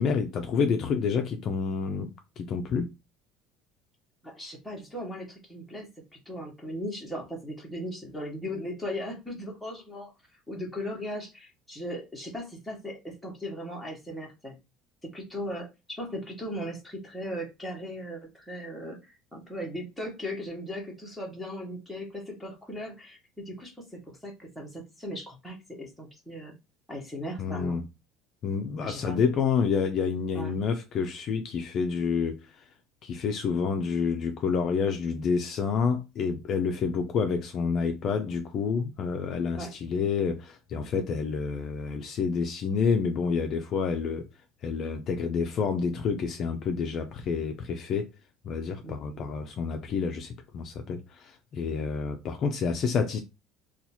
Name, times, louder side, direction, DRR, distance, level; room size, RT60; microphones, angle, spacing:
voice 1, 0.0-2.9 27.4-27.8 28.4-32.4 33.0-44.2 44.6-48.1 48.4-53.2, left 5 dB, 40° left, 0.4 m, -28 dB
voice 2, 4.2-5.9 6.3-10.1 10.5-14.6 15.0-26.5 26.9-27.8 28.8-29.2 30.3-30.5 39.6-39.7 48.8-49.2, equal, ahead, 1.1 m, -38 dB
2.8 x 2.3 x 4.2 m
cardioid pair, 155°, 0 cm